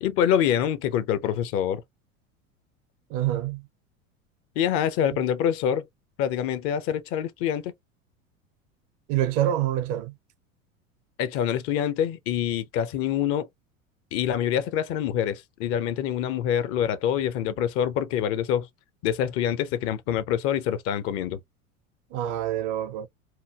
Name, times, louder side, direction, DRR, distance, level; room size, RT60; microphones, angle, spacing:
voice 1, 0.0-1.8 4.6-5.9 6.2-7.7 11.2-13.5 14.1-18.7 19.0-21.4, left 9 dB, 35° left, 0.5 m, -25 dB
voice 2, 3.1-3.6 9.1-10.1 22.1-23.1, right 12 dB, 35° right, 0.6 m, -26 dB
4.6 x 2.5 x 2.2 m
figure-of-eight pair, 80°, 42 cm